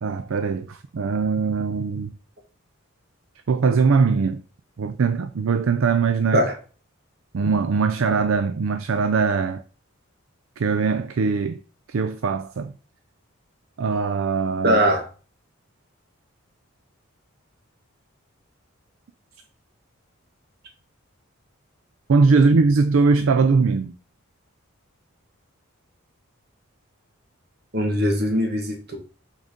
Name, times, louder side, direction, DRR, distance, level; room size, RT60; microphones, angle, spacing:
voice 1, 0.0-2.1 3.5-4.4 4.8-6.4 7.3-9.6 10.6-11.6 11.9-12.7 13.8-14.8 22.1-23.9, right 4 dB, 65° right, 0.4 m, -21 dB
voice 2, 14.6-15.1 27.7-29.0, equal, 50° right, 1.7 m, -21 dB
6.2 x 3.9 x 5.1 m
head